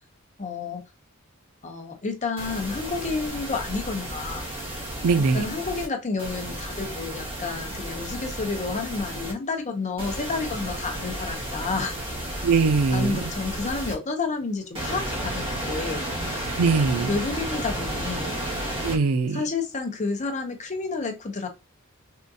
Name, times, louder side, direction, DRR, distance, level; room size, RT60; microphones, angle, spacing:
voice 1, 0.4-0.8 1.6-4.5 5.3-11.9 12.9-16.0 17.1-18.3 19.3-21.5, left 4 dB, 35° left, 0.6 m, -30 dB
sound 1, 2.4-5.9 6.2-9.3 10.0-13.9 14.7-19.0, right 1 dB, 25° right, 1.1 m, -32 dB
voice 2, 5.0-5.5 12.4-13.3 16.6-17.1 18.8-19.4, right 4 dB, 80° right, 0.4 m, -21 dB
3.6 x 2.5 x 2.6 m
head